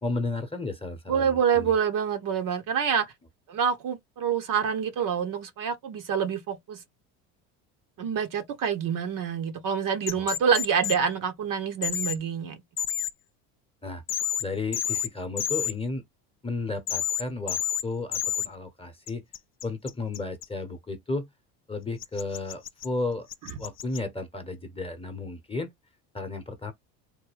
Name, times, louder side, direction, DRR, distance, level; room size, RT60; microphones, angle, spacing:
voice 1, 0.0-1.7 10.2-10.3 13.8-14.0 14.4-16.0 16.4-19.2 19.6-21.3 21.7-23.3 23.6-25.7 26.1-26.7, left 3 dB, 10° left, 0.9 m, -33 dB
voice 2, 1.1-3.1 3.5-6.8 8.0-12.6, right 7 dB, 45° right, 0.8 m, -27 dB
sound 1, 10.1-11.0 11.8-12.2 12.8-13.1 14.1-14.4 14.7-15.1 15.4-15.7 16.9-17.2 17.5-17.8 18.1-18.5 19.1-20.4 22.0-22.9 23.3-24.0, left 10 dB, 30° left, 0.4 m, -29 dB
3.5 x 2.2 x 3.3 m
hypercardioid pair, 75°, 46 cm